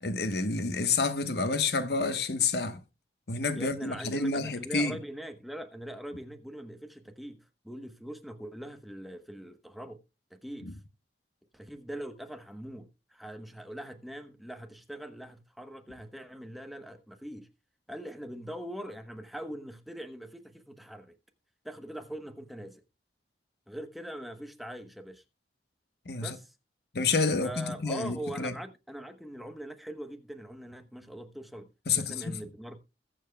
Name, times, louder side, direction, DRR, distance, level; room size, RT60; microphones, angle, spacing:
voice 1, 0.0-2.8 3.3-5.0 10.6-10.7 26.1-26.4 26.9-28.6 31.9-32.4, left 4 dB, 65° left, 1.0 m, -29 dB
voice 2, 3.5-7.4 7.6-10.0 10.3-10.8 11.5-17.5 17.9-21.1 21.6-22.8 23.7-25.2 26.2-26.5 27.4-32.8, right 1 dB, ahead, 0.9 m, -42 dB
21.0 x 7.3 x 2.2 m
head